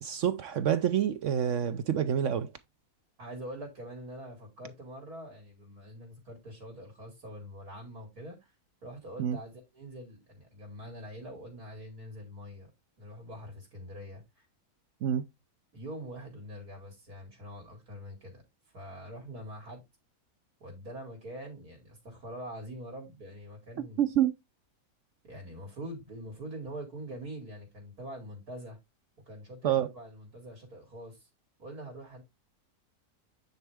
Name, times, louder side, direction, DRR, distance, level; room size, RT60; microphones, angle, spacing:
voice 1, 0.0-2.5 9.2-9.4 15.0-15.2 24.0-24.3 29.6-29.9, right 9 dB, 65° right, 0.9 m, -27 dB
voice 2, 3.2-8.5 8.8-12.7 13.0-14.4 15.7-18.4 18.7-19.8 20.6-24.0 25.2-28.8 29.3-31.3 31.6-32.2, equal, 80° right, 3.1 m, -44 dB
9.5 x 4.4 x 3.4 m
omnidirectional pair, 1.6 m